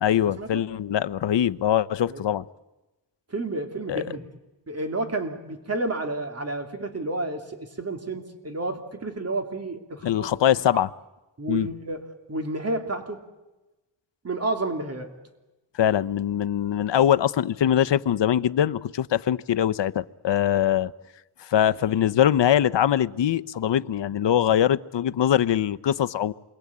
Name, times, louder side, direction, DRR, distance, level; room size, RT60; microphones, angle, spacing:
voice 1, 0.0-2.5 3.9-4.0 10.0-10.9 11.5-11.7 15.7-20.9 21.4-26.3, left 10 dB, 65° left, 13 dB, 0.8 m, -22 dB
voice 2, 3.3-4.2 4.7-7.4 7.8-10.3 10.7-10.8 11.4-13.2 14.2-15.1, right 2 dB, 30° right, 5 dB, 3.0 m, -30 dB
28.0 x 22.5 x 8.6 m, 1.1 s
wide cardioid pair, 130°, 46 cm